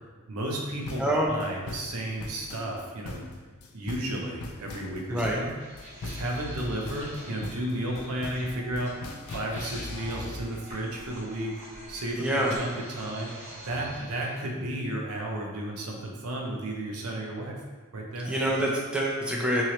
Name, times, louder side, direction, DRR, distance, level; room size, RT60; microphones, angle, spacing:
voice 1, 0.3-3.3 3.7-5.5 6.0-9.1 9.3-11.5 11.9-17.6 17.9-18.3, right 1 dB, 80° right, -1 dB, 0.6 m, -33 dB
sound 1, 0.8-10.4, left 2 dB, 70° left, 0.4 m, -41 dB
voice 2, 1.0-1.3 5.1-5.4 12.2-12.5 18.3-19.6, right 1 dB, 5° right, -3 dB, 0.3 m, -26 dB
sound 2, 5.6-14.4, left 1 dB, 30° right, 1.5 m, -43 dB
2.9 x 2.8 x 2.9 m, 1.4 s
head